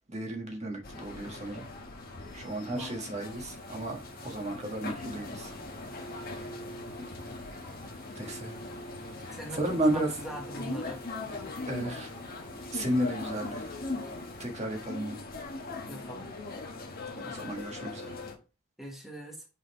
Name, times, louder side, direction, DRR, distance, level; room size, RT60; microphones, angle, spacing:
voice 1, 0.1-1.7 2.3-5.5 5.9-6.5 7.0-7.2 8.2-8.5 9.2-10.1 11.7-12.1 12.7-13.7 14.4-15.2 17.2-18.1, right 1 dB, 35° right, 1.5 m, -33 dB
sound 1, 0.8-18.4, left 2 dB, 45° left, 1.2 m, -40 dB
sound 2, 3.3-14.4, right 1 dB, 70° right, 3.0 m, -54 dB
voice 2, 9.3-11.0 15.9-16.3 18.8-19.4, equal, ahead, 1.3 m, -42 dB
5.6 x 4.2 x 4.2 m
head